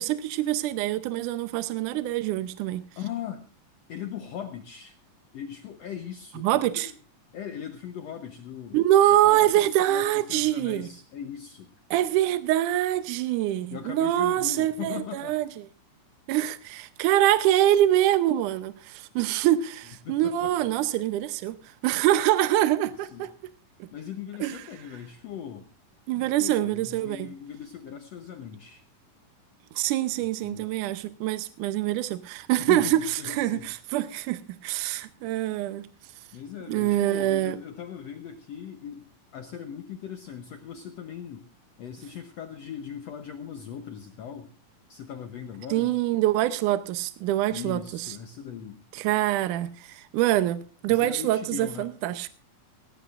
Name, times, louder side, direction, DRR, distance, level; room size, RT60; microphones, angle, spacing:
voice 1, 0.0-2.8 6.4-6.9 8.7-10.9 11.9-15.7 16.3-23.3 23.8-23.9 24.4-24.6 26.1-27.3 29.8-35.9 36.7-37.6 45.7-48.2 48.9-52.3, right 13 dB, 75° right, 2.0 m, -25 dB
voice 2, 3.0-3.4 3.9-5.0 5.3-6.9 7.3-8.8 9.1-11.7 13.7-15.4 20.0-20.7 23.0-23.3 23.9-25.7 26.1-28.8 30.4-30.7 32.6-33.7 36.3-39.1 39.3-41.5 41.8-44.5 44.9-45.9 47.5-48.8 50.9-51.9, left 8 dB, 80° left, 1.5 m, -39 dB
17.5 x 16.0 x 2.5 m
omnidirectional pair, 4.3 m